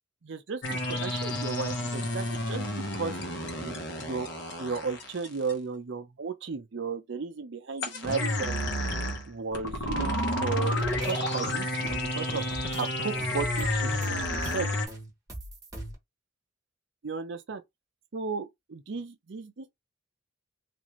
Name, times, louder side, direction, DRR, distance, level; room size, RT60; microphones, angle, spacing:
voice 1, 0.2-3.2 3.5-4.3 4.6-8.7 9.3-12.4 12.7-14.7 17.0-17.6 18.1-19.7, right 5 dB, 60° right, 0.5 m, -35 dB
sound 1, 0.6-5.5 7.8-14.9, left 1 dB, 55° left, 0.9 m, -31 dB
sound 2, 10.6-11.1 11.4-12.9 13.2-14.6 14.9-16.0, right 1 dB, 15° right, 0.9 m, -40 dB
3.3 x 2.5 x 3.0 m
head